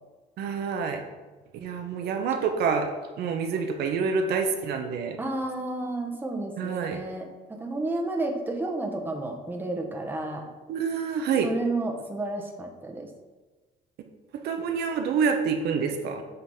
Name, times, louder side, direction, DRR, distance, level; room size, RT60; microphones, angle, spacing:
voice 1, 0.4-1.0 1.5-5.2 6.6-7.0 10.7-11.5 14.4-16.2, right 5 dB, 70° right, 5 dB, 0.7 m, -27 dB
voice 2, 5.2-7.3 7.6-10.5 11.4-13.1, right 2 dB, 10° right, 2 dB, 0.9 m, -31 dB
7.8 x 3.9 x 3.5 m, 1.2 s
cardioid pair, 110°, 17 cm